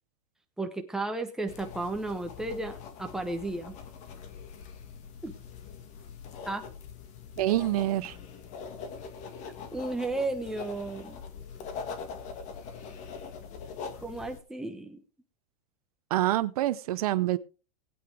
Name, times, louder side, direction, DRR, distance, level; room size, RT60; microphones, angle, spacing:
voice 1, 0.6-3.7 5.2-5.3 6.5-6.6 9.7-11.2 14.0-15.0, right 2 dB, 5° right, 1.0 m, -33 dB
sound 1, 1.5-14.4, left 6 dB, 35° left, 1.8 m, -43 dB
voice 2, 7.4-8.2 16.1-17.4, right 15 dB, 65° right, 0.6 m, -26 dB
19.5 x 8.8 x 3.4 m
supercardioid pair, 150°, 21 cm